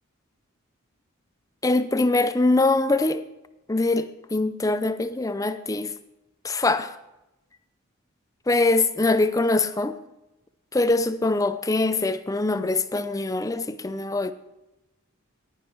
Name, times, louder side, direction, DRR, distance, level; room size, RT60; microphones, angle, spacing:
voice 1, 1.6-3.2 3.7-5.9 6.4-6.9 8.5-9.9 10.7-14.3, left 2 dB, 15° left, 0.5 m, -23 dB
10.5 x 9.8 x 4.5 m
head